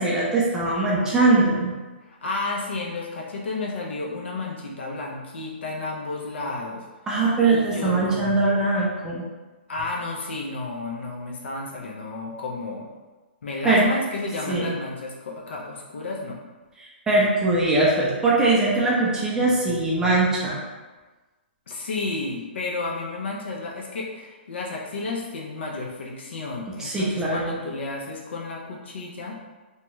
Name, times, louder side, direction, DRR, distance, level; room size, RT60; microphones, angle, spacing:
voice 1, 0.0-1.7 7.1-9.2 13.6-13.8 14.5-14.7 16.8-20.6 26.8-27.5, right 2 dB, 10° right, -5 dB, 0.4 m, -21 dB
voice 2, 2.0-6.8 7.4-8.2 9.7-12.9 13.4-16.4 21.7-29.4, left 3 dB, 75° left, -2 dB, 0.6 m, -32 dB
2.8 x 2.2 x 2.9 m, 1.3 s
hypercardioid pair, 150°, 6 cm